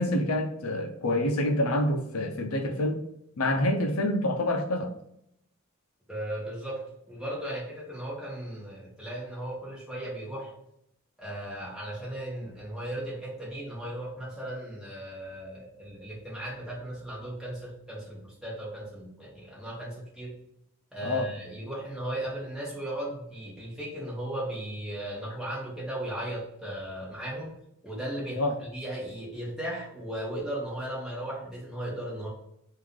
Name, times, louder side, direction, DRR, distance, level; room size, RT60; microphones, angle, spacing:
voice 1, 0.0-3.0 3.4-4.9 21.0-21.3 28.4-28.5, left 1 dB, 90° left, 4 dB, 0.7 m, -27 dB
voice 2, 6.1-10.5 11.2-20.3 20.9-27.5 27.8-32.3, right 1 dB, 5° right, -6 dB, 1.6 m, -36 dB
3.8 x 2.7 x 4.7 m, 0.76 s
head